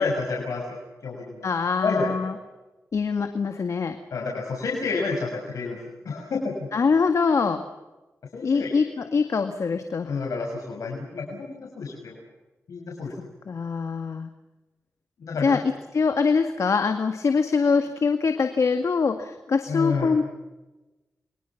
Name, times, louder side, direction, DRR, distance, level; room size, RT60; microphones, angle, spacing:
voice 1, 0.0-1.4 1.8-2.1 4.1-5.8 6.0-6.7 8.3-8.8 10.1-12.2 12.7-13.1 15.2-15.6 19.7-20.1, left 4 dB, 85° left, -2 dB, 6.4 m, -29 dB
voice 2, 1.4-2.3 2.9-4.0 6.7-7.6 8.4-10.1 13.5-14.3 15.4-15.6 15.9-20.3, left 5 dB, 70° left, 7 dB, 2.1 m, -23 dB
29.5 x 23.5 x 6.0 m, 1.1 s
cardioid pair, 55°, 5 cm